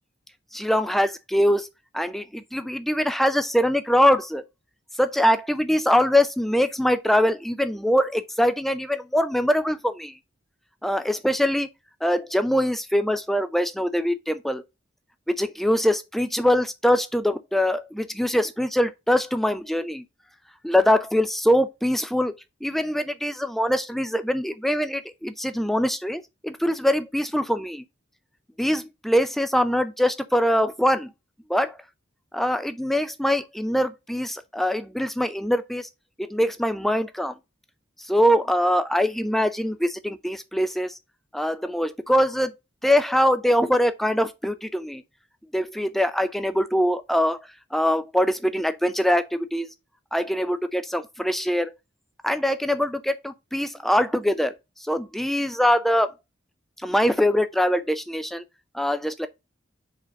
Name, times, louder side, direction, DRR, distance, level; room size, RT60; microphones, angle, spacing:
voice 1, 0.5-1.7 1.9-4.4 5.0-10.1 10.8-11.7 12.0-14.6 15.3-20.0 20.6-22.3 22.6-27.8 28.6-31.1 31.5-31.8 32.3-35.9 36.2-37.3 38.1-40.9 41.3-42.5 42.8-45.0 45.5-47.4 47.7-49.7 50.1-51.7 52.2-54.5 54.8-56.1 56.8-58.4 58.7-59.3, equal, ahead, 0.4 m, -23 dB
5.0 x 3.7 x 5.2 m
head